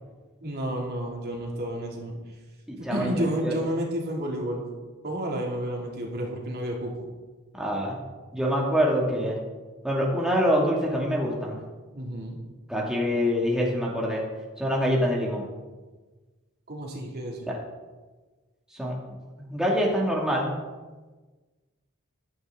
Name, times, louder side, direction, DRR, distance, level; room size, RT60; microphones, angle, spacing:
voice 1, 0.4-2.2 2.9-4.6 5.0-7.1 11.9-12.4 16.7-17.5, equal, 50° right, -1 dB, 2.9 m, -31 dB
voice 2, 2.7-3.5 7.5-8.0 8.3-9.4 9.8-11.6 12.7-14.2 14.6-15.5 17.4-17.5 18.7-19.0 19.4-20.5, equal, 5° right, -3 dB, 2.4 m, -25 dB
15.5 x 12.5 x 3.9 m, 1.3 s
head